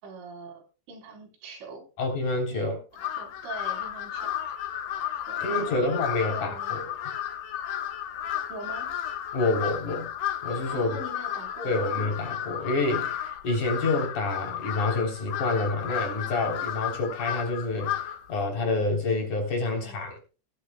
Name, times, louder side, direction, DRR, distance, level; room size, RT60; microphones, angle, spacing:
voice 1, 0.0-1.9 2.5-2.8 3.2-4.3 5.3-6.0 6.3-6.9 8.5-8.9 10.7-12.0 19.7-20.0, right 2 dB, 85° right, 6.6 m, -42 dB
voice 2, 2.0-2.8 5.4-6.9 9.3-10.1 10.4-11.0 11.6-20.2, left 2 dB, 45° left, 4.6 m, -28 dB
Crow, 2.9-18.3, left 10 dB, 70° left, 3.3 m, -33 dB
18.5 x 13.5 x 2.2 m
omnidirectional pair, 5.3 m